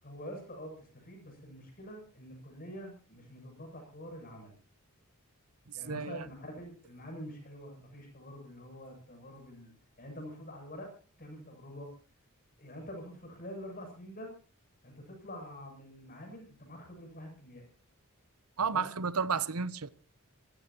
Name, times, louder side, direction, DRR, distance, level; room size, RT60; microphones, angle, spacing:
voice 1, 0.0-4.5 5.7-9.7 10.0-10.9 11.2-11.9 12.6-14.3 14.8-17.7 18.6-18.9, equal, 40° left, 7.9 m, -46 dB
voice 2, 5.7-6.3 18.6-19.9, right 5 dB, 80° right, 0.9 m, -32 dB
27.0 x 15.5 x 3.0 m
head